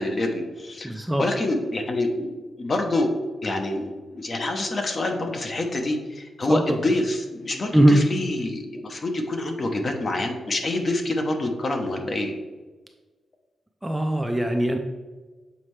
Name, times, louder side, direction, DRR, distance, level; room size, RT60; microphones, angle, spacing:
voice 1, 0.0-2.3 2.5-3.1 3.4-12.3, left 2 dB, 40° left, 4 dB, 0.9 m, -26 dB
voice 2, 0.8-1.2 6.5-6.8 7.7-8.0 13.8-14.8, right 1 dB, 5° right, 3 dB, 0.4 m, -20 dB
7.3 x 4.3 x 3.2 m, 1.3 s
cardioid pair, 115°, 0 cm